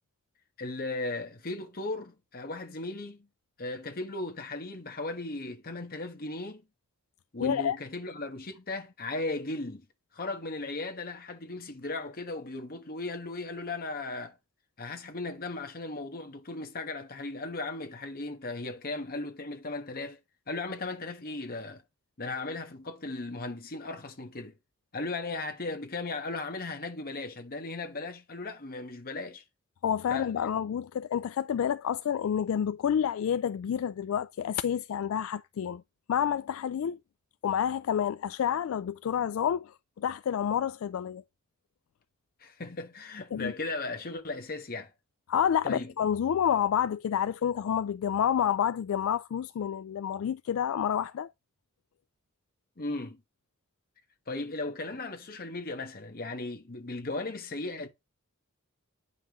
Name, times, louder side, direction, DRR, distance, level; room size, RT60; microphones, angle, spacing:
voice 1, 0.6-3.3 3.6-6.6 7.3-9.9 10.1-14.4 14.8-20.2 20.5-21.8 22.2-24.5 24.9-29.4 30.1-30.3 42.4-44.9 45.6-45.9 52.8-53.2 54.3-57.9, left 2 dB, 45° left, 1.2 m, -36 dB
voice 2, 7.4-7.8 29.8-35.8 36.1-37.0 37.4-41.2 43.3-43.5 45.3-51.3, left 8 dB, 65° left, 0.3 m, -29 dB
9.3 x 5.6 x 3.0 m
head